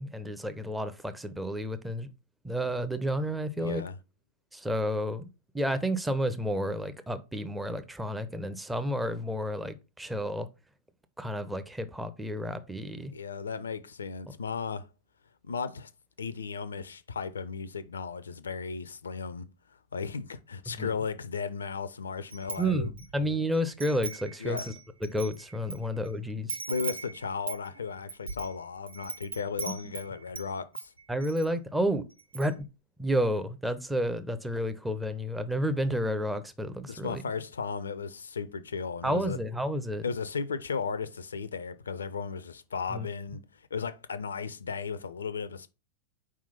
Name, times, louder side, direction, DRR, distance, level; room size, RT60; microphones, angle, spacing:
voice 1, 0.0-2.1 2.4-3.8 4.5-5.3 5.5-10.5 11.2-13.1 20.8-20.9 22.6-24.6 25.0-26.6 31.1-32.0 32.3-32.5 33.0-37.2 39.0-40.0 42.9-43.1, equal, 5° right, 0.6 m, -31 dB
voice 2, 3.6-4.0 13.1-14.9 15.4-15.9 16.2-19.5 19.9-22.9 24.4-24.6 25.8-25.9 26.7-30.9 36.9-39.4 40.0-43.4 43.7-45.7, left 5 dB, 70° left, 0.4 m, -35 dB
Wind chime, 22.3-23.1 23.5-25.8 26.0-26.1 26.5-30.5 30.7-31.5 31.8-31.9 32.2-32.6, right 4 dB, 70° right, 0.7 m, -39 dB
4.6 x 3.7 x 5.5 m
figure-of-eight pair, 90°, 0 cm